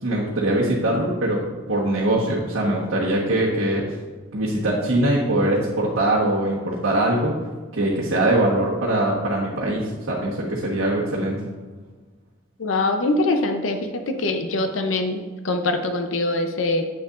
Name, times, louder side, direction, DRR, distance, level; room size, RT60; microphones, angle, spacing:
voice 1, 0.0-1.4 1.7-3.8 4.3-7.3 7.7-11.4, right 1 dB, 85° right, -6 dB, 1.2 m, -22 dB
voice 2, 12.6-16.8, left 2 dB, 75° left, 6 dB, 0.6 m, -23 dB
7.9 x 6.6 x 2.5 m, 1.4 s
head